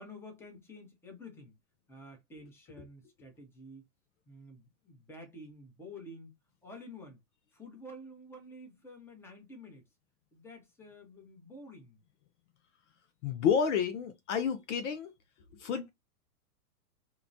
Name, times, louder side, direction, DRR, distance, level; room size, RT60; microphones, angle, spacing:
voice 1, 0.0-1.5 1.9-3.9 4.3-6.3 6.6-7.2 7.5-9.8 10.3-12.0, left 1 dB, 5° left, 0.7 m, -50 dB
voice 2, 13.2-15.1 15.5-15.9, left 7 dB, 50° left, 0.5 m, -30 dB
2.8 x 2.2 x 2.5 m
hypercardioid pair, 130°, 48 cm